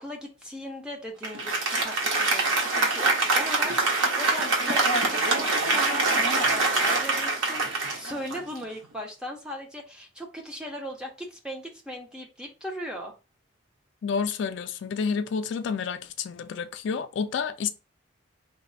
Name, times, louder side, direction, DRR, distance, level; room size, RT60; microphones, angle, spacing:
voice 1, 0.0-13.1, equal, 5° right, 0.6 m, -38 dB
Applause, 1.2-8.8, right 3 dB, 85° right, 0.8 m, -24 dB
voice 2, 14.0-17.7, left 6 dB, 65° left, 0.3 m, -29 dB
3.2 x 2.0 x 3.8 m
head